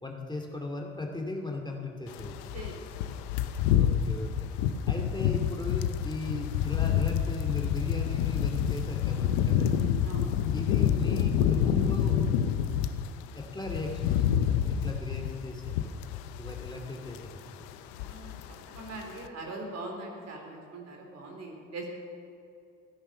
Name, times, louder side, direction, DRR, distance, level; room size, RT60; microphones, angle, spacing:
voice 1, 0.0-2.4 3.7-4.4 4.9-9.9 10.5-12.2 13.1-16.0 16.4-17.6, left 2 dB, 15° left, 1 dB, 2.6 m, -37 dB
sound 1, 2.1-13.1 13.4-16.8 17.1-17.4 17.7-18.5 18.7-19.0, left 9 dB, 85° left, 0.8 m, -28 dB
voice 2, 18.0-21.9, right 2 dB, 55° right, 1 dB, 4.2 m, -41 dB
15.5 x 11.0 x 7.2 m, 2.7 s
supercardioid pair, 65°, 31 cm